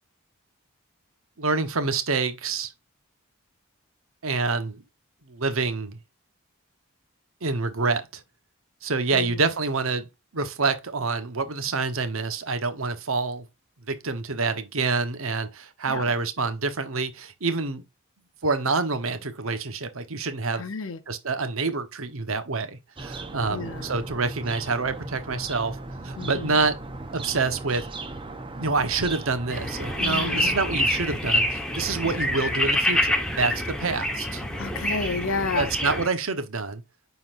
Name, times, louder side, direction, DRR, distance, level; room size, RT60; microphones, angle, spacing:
voice 1, 1.4-2.7 4.2-4.8 5.3-6.0 7.4-8.0 8.8-10.1 10.3-13.5 13.9-17.8 18.4-20.7 21.1-25.8 26.0-26.8 27.1-27.9 28.6-34.4 35.5-36.8, right 4 dB, 70° right, 1.1 m, -27 dB
voice 2, 9.1-9.4 15.9-16.1 20.6-21.0 23.5-23.9 26.2-26.6 30.0-30.6 32.0-32.2 34.6-35.7, left 4 dB, 65° left, 0.8 m, -31 dB
sound 1, 23.0-31.0, right 2 dB, 25° right, 0.8 m, -37 dB
sound 2, 29.5-36.1, left 1 dB, 5° left, 1.2 m, -26 dB
9.3 x 4.1 x 2.6 m
head